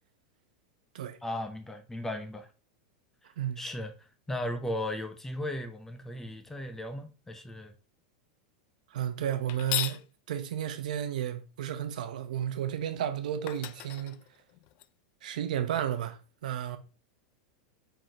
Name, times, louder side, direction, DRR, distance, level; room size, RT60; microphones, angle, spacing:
voice 1, 1.2-2.5 3.6-7.7, left 1 dB, 10° left, 0.7 m, -36 dB
voice 2, 8.9-10.0 10.3-14.2 15.2-16.8, right 10 dB, 75° right, 0.8 m, -32 dB
sound 1, 9.5-10.0 13.0-13.1 13.5-14.8, left 14 dB, 50° left, 0.4 m, -35 dB
5.0 x 3.8 x 2.8 m
hypercardioid pair, 125°, 4 cm